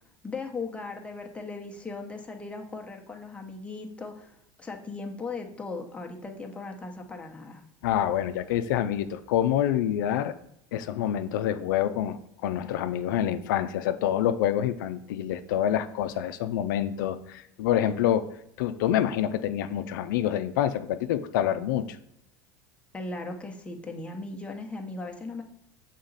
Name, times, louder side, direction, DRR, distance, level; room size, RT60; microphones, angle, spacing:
voice 1, 0.2-7.6 22.9-25.4, left 3 dB, 10° left, 2 dB, 0.9 m, -38 dB
voice 2, 7.8-10.3 10.7-12.2 12.4-18.2 18.6-22.0, left 11 dB, 85° left, 9 dB, 0.4 m, -27 dB
6.4 x 3.9 x 4.0 m, 0.74 s
supercardioid pair, 115°, 10 cm